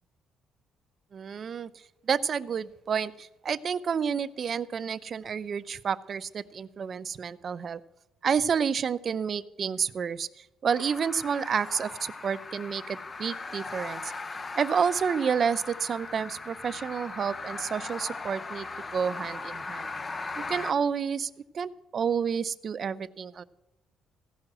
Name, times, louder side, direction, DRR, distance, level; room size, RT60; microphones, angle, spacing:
voice 1, 1.1-1.7 2.1-7.8 8.2-14.1 14.5-18.7 18.9-19.9 20.5-23.4, right 7 dB, 45° right, 14 dB, 0.5 m, -30 dB
sound 1, 10.7-20.7, left 3 dB, 25° left, 0.5 m, -39 dB
15.5 x 6.1 x 7.7 m, 0.99 s
cardioid pair, 110°, 0 cm